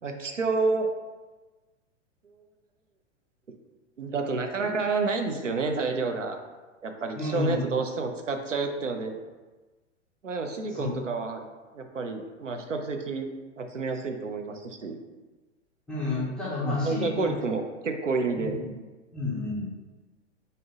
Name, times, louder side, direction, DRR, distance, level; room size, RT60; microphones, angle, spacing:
voice 1, 0.0-0.9 2.2-2.3 4.0-6.4 6.8-9.2 10.2-11.5 11.7-13.3 13.6-15.0 16.6-18.5, right 4 dB, 90° right, 5 dB, 0.5 m, -29 dB
voice 2, 7.1-7.6 10.7-10.9 15.9-17.3 18.4-18.7 19.1-19.7, left 3 dB, 5° left, -8 dB, 0.3 m, -30 dB
3.3 x 2.6 x 4.0 m, 1.2 s
figure-of-eight pair, 100°, 36 cm